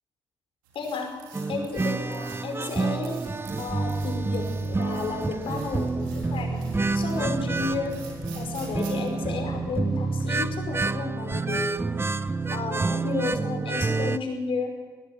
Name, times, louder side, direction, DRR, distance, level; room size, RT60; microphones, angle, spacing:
sound 1, 0.6-9.1, right 6 dB, 80° right, 4.2 m, -49 dB
voice 1, 0.7-1.1 1.5-3.2 3.6-6.7 6.9-8.0 8.3-11.9 12.5-14.7, left 4 dB, 55° left, 4 dB, 5.6 m, -32 dB
sound 2, 1.3-14.2, right 3 dB, 20° right, 1.0 m, -28 dB
sound 3, 3.4-11.0, left 4 dB, 75° left, 4.6 m, -41 dB
21.0 x 20.0 x 7.6 m, 1.4 s
figure-of-eight pair, 45°, 11 cm